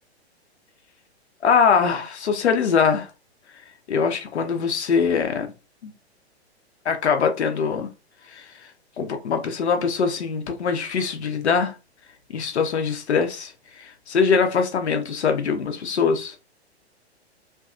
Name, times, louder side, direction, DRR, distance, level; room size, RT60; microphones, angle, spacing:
voice 1, 1.4-3.1 3.9-5.5 5.8-5.9 6.9-7.9 8.3-8.5 9.0-11.7 12.3-16.3, left 6 dB, 80° left, 0.6 m, -22 dB
2.6 x 2.4 x 2.4 m
figure-of-eight pair, 110°, 33 cm